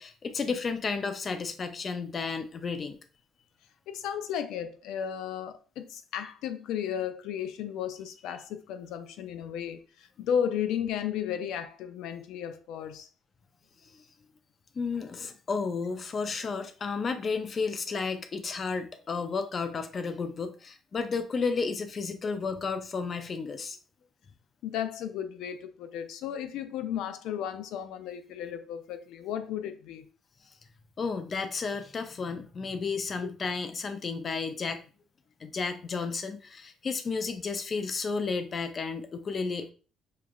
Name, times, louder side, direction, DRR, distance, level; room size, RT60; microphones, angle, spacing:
voice 1, 0.0-3.0 13.8-14.0 14.7-23.8 31.0-34.8 35.4-39.7, left 4 dB, 35° left, 0.5 m, -32 dB
voice 2, 3.9-13.1 24.6-30.1, left 9 dB, 90° left, 0.4 m, -34 dB
6.5 x 2.4 x 2.3 m
cardioid pair, 140°, 0 cm